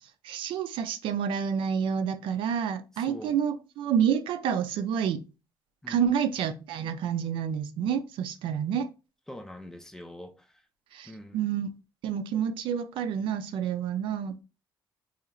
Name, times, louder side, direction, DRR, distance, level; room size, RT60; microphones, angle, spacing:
voice 1, 0.2-5.3 5.9-8.9 10.9-11.7 12.0-14.4, right 8 dB, 80° right, 0.4 m, -29 dB
voice 2, 3.0-3.4 5.8-6.1 9.3-10.6 11.1-11.4, left 1 dB, 5° left, 0.3 m, -44 dB
4.3 x 2.8 x 2.5 m
cardioid pair, 175°, 9 cm